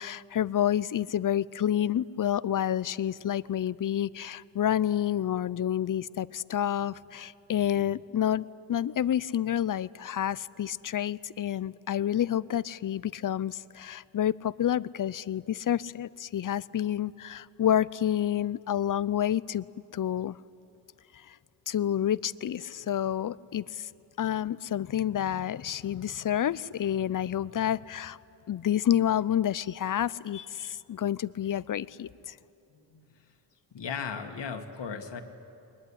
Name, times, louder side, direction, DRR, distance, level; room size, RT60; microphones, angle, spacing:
voice 1, 0.0-19.7 19.9-20.4 21.3-21.4 21.7-23.9 24.2-28.2 28.5-32.3, left 10 dB, 45° left, 19 dB, 0.6 m, -29 dB
voice 2, 32.7-33.1 33.7-35.2, left 6 dB, 65° left, 6 dB, 2.1 m, -37 dB
21.5 x 20.0 x 9.9 m, 2.8 s
cardioid pair, 70°, 45 cm